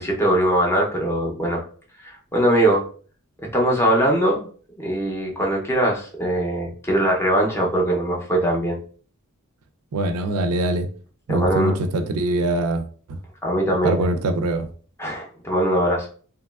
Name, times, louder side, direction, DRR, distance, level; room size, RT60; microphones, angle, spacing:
voice 1, 0.0-1.6 2.0-2.8 3.5-4.5 4.8-8.8 11.3-11.7 13.4-14.1 15.0-16.1, right 1 dB, 10° left, -1 dB, 0.5 m, -21 dB
voice 2, 9.9-10.9 11.3-12.8 13.1-13.2 13.8-14.7, right 2 dB, 85° right, 8 dB, 0.4 m, -23 dB
3.0 x 2.3 x 2.2 m, 0.43 s
head